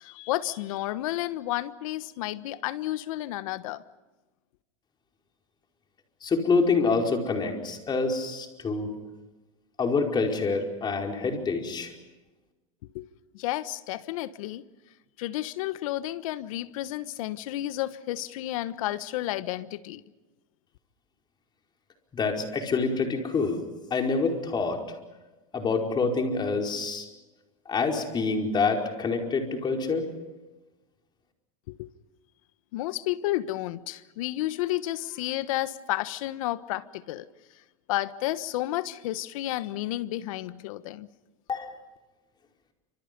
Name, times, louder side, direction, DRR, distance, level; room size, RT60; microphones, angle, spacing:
voice 1, 0.0-3.8 12.9-13.1 13.3-14.7 15.2-20.0 31.7-31.9 32.7-37.3 37.9-41.1, left 15 dB, 70° left, 1.3 m, -31 dB
voice 2, 6.2-8.9 9.8-11.9 22.1-23.6 23.9-24.8 25.5-27.1 27.7-30.1 41.5-41.7, left 4 dB, 25° left, 4.9 m, -26 dB
29.0 x 26.5 x 5.4 m
supercardioid pair, 120°, 18 cm